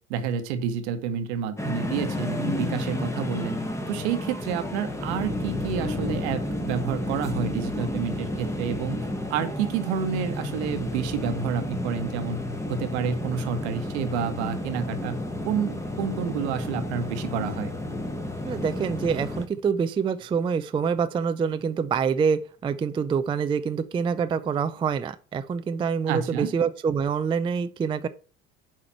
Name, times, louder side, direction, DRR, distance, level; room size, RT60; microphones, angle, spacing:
voice 1, 0.1-3.6 3.9-12.4 12.7-17.7 26.1-26.5, right 7 dB, 65° right, 1.1 m, -29 dB
sound 1, 1.6-19.5, left 1 dB, 10° left, 1.1 m, -31 dB
voice 2, 18.4-28.1, right 6 dB, 15° right, 0.4 m, -26 dB
7.5 x 4.9 x 4.4 m
figure-of-eight pair, 60°, 37 cm